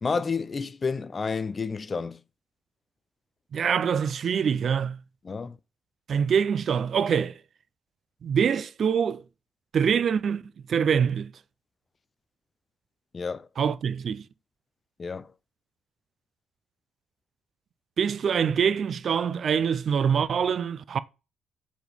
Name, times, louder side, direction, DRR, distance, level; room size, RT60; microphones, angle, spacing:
voice 1, 0.0-2.2 5.2-5.6 13.1-13.5 15.0-15.3, left 5 dB, 35° left, 0.4 m, -30 dB
voice 2, 3.5-5.0 6.1-7.4 8.2-9.2 9.7-10.4 10.7-11.3 13.6-14.3 18.0-21.0, right 7 dB, 55° right, 0.4 m, -24 dB
7.1 x 4.2 x 3.4 m
cardioid pair, 90°, 0 cm